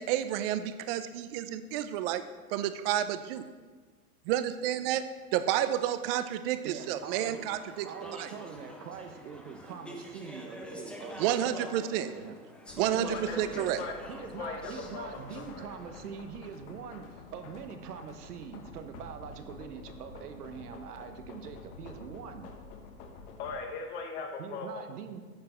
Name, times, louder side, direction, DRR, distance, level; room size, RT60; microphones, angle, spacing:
voice 1, 0.0-2.2 2.5-3.5 4.3-5.0 5.3-7.9 8.2-8.3 11.2-12.1 12.8-13.8, right 11 dB, 40° right, 12 dB, 0.6 m, -30 dB
voice 2, 6.6-7.4 7.8-12.4 12.8-13.7 14.1-22.5 24.4-25.2, right 7 dB, 75° right, 8 dB, 1.1 m, -43 dB
Speech / Chatter, 6.8-16.2, left 1 dB, ahead, 0.7 m, -47 dB
sound 1, 12.7-23.6, left 3 dB, 60° left, 1.5 m, -49 dB
voice 3, 13.1-15.7 23.4-24.8, left 4 dB, 45° left, 2 dB, 1.1 m, -39 dB
9.5 x 6.9 x 4.4 m, 1.5 s
hypercardioid pair, 115°, 46 cm